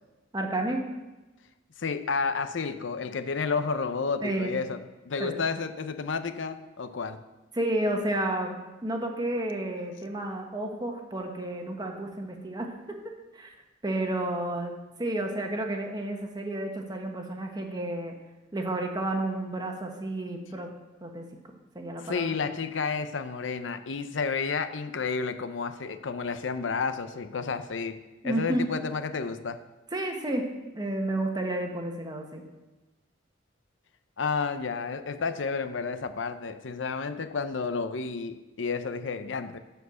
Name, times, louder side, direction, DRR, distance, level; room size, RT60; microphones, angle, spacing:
voice 1, 0.3-0.8 4.2-4.5 5.2-5.4 7.5-13.5 13.8-18.1 18.5-20.7 21.0-21.3 21.7-22.3 28.2-28.7 29.9-30.4 30.7-32.4, right 1 dB, 20° right, 3 dB, 1.2 m, -31 dB
voice 2, 1.8-4.8 5.0-7.2 22.0-28.0 28.2-29.6 34.2-39.6, left 5 dB, 90° left, 10 dB, 0.6 m, -31 dB
11.0 x 4.6 x 6.9 m, 1.1 s
head